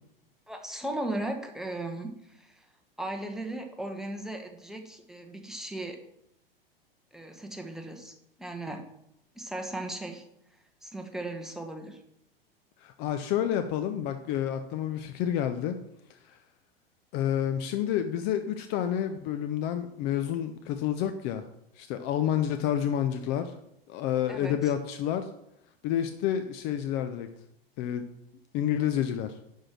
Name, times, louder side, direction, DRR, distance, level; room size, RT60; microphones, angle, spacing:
voice 1, 0.5-2.7 3.0-6.0 7.1-8.8 9.3-10.2 10.8-12.0 24.3-24.7, right 1 dB, ahead, 3 dB, 1.2 m, -37 dB
voice 2, 12.8-15.8 16.1-16.4 17.1-21.5 21.8-23.5 23.9-25.3 25.8-27.3 27.8-28.1 28.5-29.4, left 10 dB, 35° left, 8 dB, 0.6 m, -29 dB
11.0 x 4.6 x 6.0 m, 0.77 s
figure-of-eight pair, 90°, 30 cm